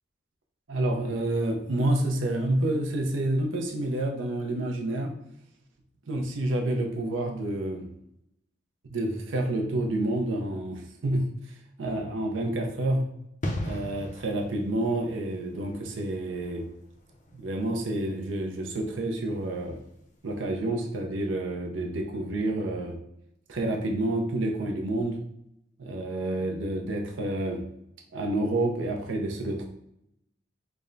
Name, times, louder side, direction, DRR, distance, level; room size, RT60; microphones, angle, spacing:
voice 1, 0.7-5.2 6.1-7.9 8.9-11.3 11.8-13.1 13.6-16.7 17.3-19.8 20.2-23.0 23.5-25.2 25.8-27.7 28.1-29.7, right 1 dB, 85° right, 2 dB, 0.6 m, -29 dB
sound 1, 13.4-19.9 20.2-20.4, left 1 dB, 40° left, 0.5 m, -39 dB
3.4 x 2.1 x 3.8 m, 0.81 s
head